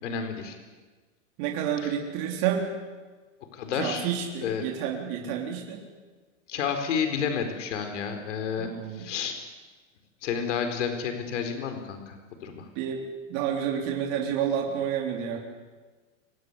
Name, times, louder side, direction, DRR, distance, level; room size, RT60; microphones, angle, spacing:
voice 1, 0.0-0.6 1.8-1.9 3.5-4.0 4.4-4.7 6.5-9.4 10.2-12.1 12.4-12.7, left 7 dB, 70° left, 6 dB, 4.6 m, -30 dB
voice 2, 1.4-2.7 3.8-5.8 8.6-9.1 12.8-13.0 13.3-15.4, right 8 dB, 40° right, 1 dB, 3.7 m, -29 dB
24.5 x 18.0 x 9.9 m, 1.3 s
supercardioid pair, 160°, 38 cm